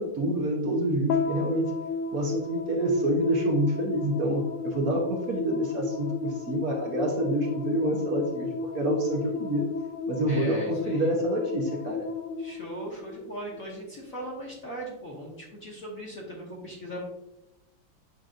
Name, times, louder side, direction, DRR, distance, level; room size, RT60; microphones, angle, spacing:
voice 1, 0.0-1.7 2.1-9.7 10.1-12.1, right 1 dB, 55° right, 0 dB, 1.2 m, -27 dB
sound 1, 1.1-13.6, left 5 dB, 85° left, 1.5 m, -33 dB
voice 2, 10.3-11.1 12.4-17.1, equal, 45° left, -5 dB, 1.4 m, -38 dB
7.7 x 5.2 x 2.5 m, 0.92 s
omnidirectional pair, 2.3 m